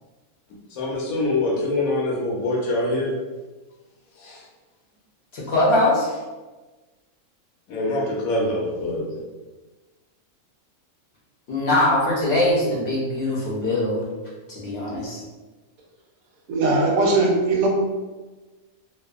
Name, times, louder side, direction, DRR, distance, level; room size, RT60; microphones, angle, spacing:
voice 1, 0.7-3.1 4.2-4.4 7.7-9.0, left 2 dB, 75° left, -2 dB, 1.1 m, -24 dB
voice 2, 5.3-6.1 11.5-14.0 14.5-15.2, left 1 dB, 55° left, -6 dB, 0.8 m, -22 dB
voice 3, 16.5-17.7, right 2 dB, 80° right, -1 dB, 1.0 m, -19 dB
2.7 x 2.3 x 2.3 m, 1.2 s
omnidirectional pair, 1.5 m